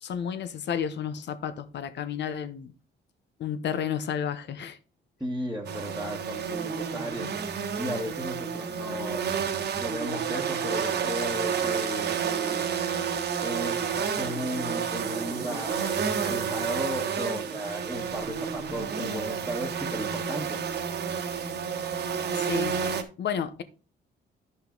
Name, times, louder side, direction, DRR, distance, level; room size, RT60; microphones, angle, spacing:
voice 1, 0.0-2.7 3.4-4.8 22.4-22.7 23.2-23.6, left 8 dB, 65° left, 0.9 m, -31 dB
voice 2, 5.2-7.3 7.8-9.2 9.8-12.9 13.4-20.6, equal, 5° right, 1.5 m, -35 dB
sound 1, 5.6-23.0, right 7 dB, 60° right, 1.3 m, -30 dB
11.0 x 5.5 x 3.9 m
cardioid pair, 90°, 20 cm